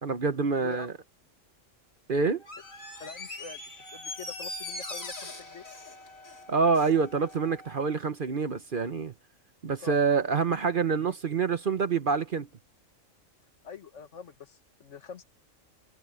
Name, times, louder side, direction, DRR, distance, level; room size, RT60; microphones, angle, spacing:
voice 1, 0.0-0.9 2.1-2.4 6.5-9.1 9.6-12.5, right 5 dB, 45° right, 1.0 m, -26 dB
voice 2, 0.6-0.9 3.0-3.6 3.9-5.6 9.8-10.0 13.6-15.2, left 5 dB, 65° left, 1.6 m, -44 dB
Door, 2.4-7.0 7.3-7.4, left 2 dB, 85° left, 3.9 m, -41 dB
Wind instrument woodwind instrument, 3.8-8.0, left 1 dB, 75° right, 5.9 m, -52 dB
omnidirectional pair, 1.4 m